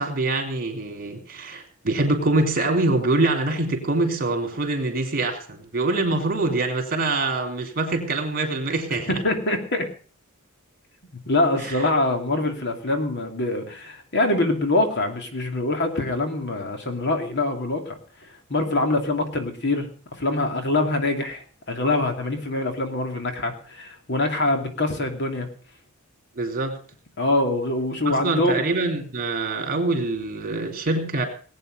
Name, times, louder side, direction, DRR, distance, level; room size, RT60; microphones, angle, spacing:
voice 1, 0.0-9.2 11.6-11.8 26.4-26.8 28.1-31.2, right 2 dB, 45° right, 4 dB, 3.6 m, -24 dB
voice 2, 9.1-9.9 11.1-18.0 18.5-25.5 27.2-28.6, left 2 dB, 55° left, 5 dB, 2.6 m, -24 dB
19.5 x 9.1 x 5.3 m, 0.41 s
head